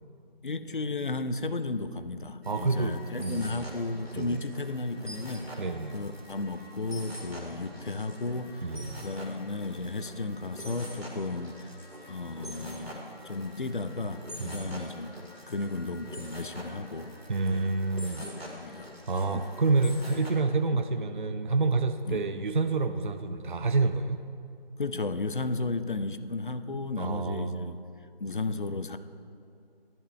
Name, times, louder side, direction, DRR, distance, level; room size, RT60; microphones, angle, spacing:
voice 1, 0.4-5.5 5.9-8.6 9.0-11.5 12.1-15.1 15.5-17.1 17.5-17.7 18.2-19.0 19.3-19.4 22.1-22.2 24.8-27.8 28.2-29.0, left 3 dB, 55° left, 11 dB, 0.5 m, -34 dB
sound 1, 2.4-20.3, equal, 90° right, 2.2 m, -45 dB
voice 2, 2.5-3.7 4.1-4.4 5.6-5.9 8.6-9.0 14.4-14.8 17.3-18.3 19.1-24.2 27.0-27.7, right 3 dB, 55° right, 9 dB, 0.4 m, -28 dB
10.0 x 10.0 x 3.2 m, 2.4 s
figure-of-eight pair, 165°, 30 cm